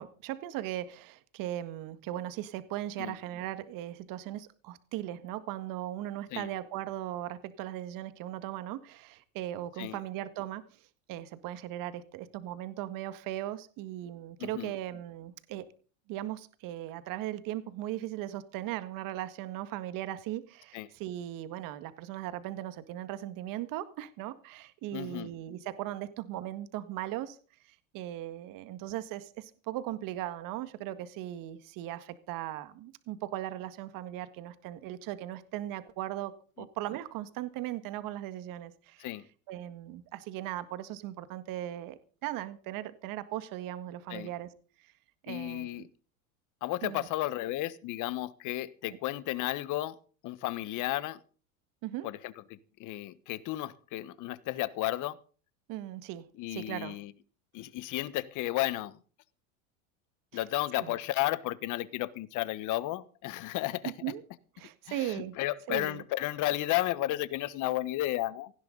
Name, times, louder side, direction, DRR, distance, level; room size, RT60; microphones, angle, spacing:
voice 1, 0.0-10.6 11.1-15.7 16.1-27.4 27.6-39.1 39.5-44.5 44.8-44.9 45.2-45.9 46.8-47.1 48.9-49.0 51.8-52.1 55.7-57.0 60.8-60.9 63.8-64.2 64.6-65.4 65.7-66.0, right 13 dB, 55° right, 12 dB, 1.8 m, -38 dB
voice 2, 14.4-14.7 20.7-20.9 24.9-25.3 39.0-39.3 44.1-44.3 45.3-45.9 46.6-50.0 50.2-51.2 52.0-55.2 56.4-57.1 57.5-59.0 60.3-63.9 64.9-68.5, left 16 dB, 50° left, 17 dB, 1.3 m, -33 dB
18.0 x 16.0 x 4.0 m, 0.40 s
supercardioid pair, 105°, 40 cm